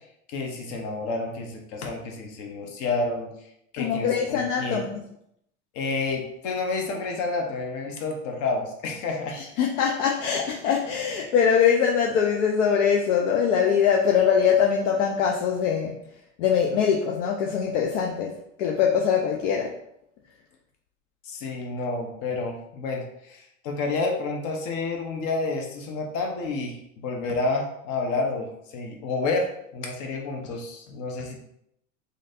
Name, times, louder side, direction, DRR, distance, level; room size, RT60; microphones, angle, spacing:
voice 1, 0.3-3.3 3.7-4.8 5.7-9.4 21.2-31.4, left 3 dB, 50° left, 2 dB, 1.0 m, -29 dB
voice 2, 3.8-5.0 9.3-16.0 16.4-19.8, left 7 dB, 70° left, 1 dB, 0.6 m, -23 dB
3.1 x 2.6 x 4.1 m, 0.76 s
hypercardioid pair, 105°, 39 cm